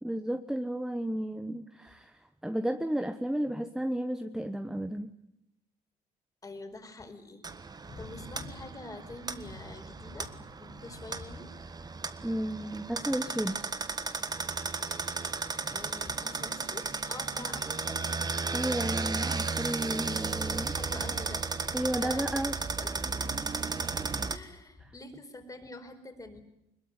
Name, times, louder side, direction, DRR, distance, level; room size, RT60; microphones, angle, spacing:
voice 1, 0.0-5.1 12.2-13.6 18.5-20.8 21.7-22.5, right 1 dB, 5° right, 8 dB, 1.2 m, -33 dB
voice 2, 6.4-11.5 15.7-18.3 20.7-21.5 22.0-23.3 24.3-26.4, left 2 dB, 20° left, 6 dB, 4.7 m, -46 dB
stoplicht blinde tik, 7.4-24.4, right 4 dB, 25° right, 1.5 m, -34 dB
21.5 x 21.5 x 9.7 m, 0.83 s
cardioid pair, 110°, 17 cm